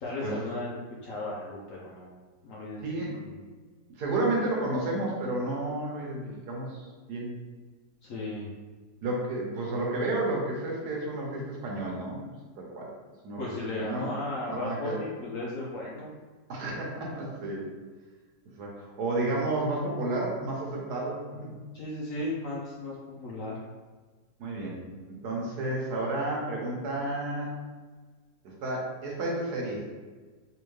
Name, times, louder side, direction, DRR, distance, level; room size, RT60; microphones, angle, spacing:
voice 1, 0.0-2.1 2.4-2.8 3.2-3.4 8.0-8.5 13.4-16.1 21.7-23.6, left 2 dB, 65° left, -5 dB, 0.8 m, -35 dB
voice 2, 2.8-3.1 4.0-7.3 9.0-12.3 12.6-12.9 13.2-13.4 13.8-14.2 14.4-15.0 16.5-17.6 18.6-21.5 24.4-27.5 28.4-29.8, right 2 dB, 70° right, -2 dB, 1.3 m, -31 dB
3.4 x 3.0 x 3.1 m, 1.4 s
omnidirectional pair, 1.9 m